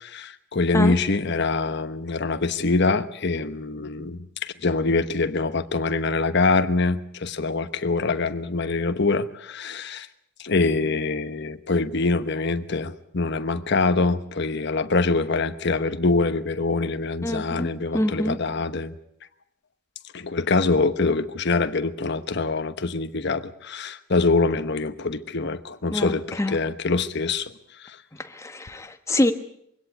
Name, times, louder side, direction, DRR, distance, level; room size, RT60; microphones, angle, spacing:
voice 1, 0.0-10.1 10.4-18.9 20.1-27.5 27.8-28.0, left 3 dB, 55° left, 10 dB, 1.1 m, -24 dB
voice 2, 17.2-18.4 25.9-26.6 28.2-29.3, left 1 dB, 15° left, 8 dB, 1.2 m, -26 dB
22.0 x 17.0 x 8.2 m, 0.74 s
head